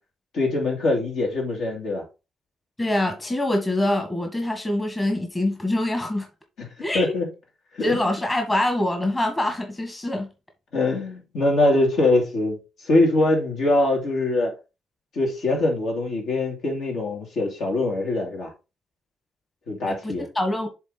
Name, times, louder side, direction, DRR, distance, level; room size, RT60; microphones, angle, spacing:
voice 1, 0.3-2.0 6.9-7.2 7.8-8.1 10.7-12.6 12.9-14.5 15.1-18.5 19.7-20.2, left 2 dB, 70° left, 2.9 m, -23 dB
voice 2, 2.8-6.3 6.8-7.1 7.8-10.3 19.8-20.7, left 1 dB, 20° left, 1.4 m, -25 dB
7.3 x 3.6 x 4.0 m
cardioid pair, 90°, 0 cm